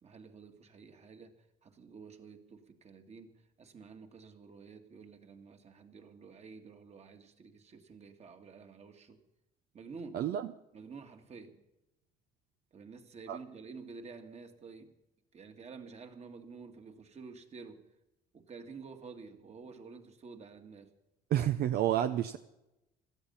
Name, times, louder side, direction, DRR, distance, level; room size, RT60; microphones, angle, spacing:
voice 1, 0.0-1.4 1.6-9.2 9.7-10.2 10.7-11.6 12.7-14.9 15.3-17.9 18.3-20.9, right 4 dB, 40° right, 5 dB, 2.1 m, -50 dB
voice 2, 10.1-10.5 13.3-13.4 21.3-22.4, right 11 dB, 70° right, 10 dB, 0.7 m, -29 dB
17.5 x 13.5 x 5.6 m, 0.93 s
cardioid pair, 110°, 17 cm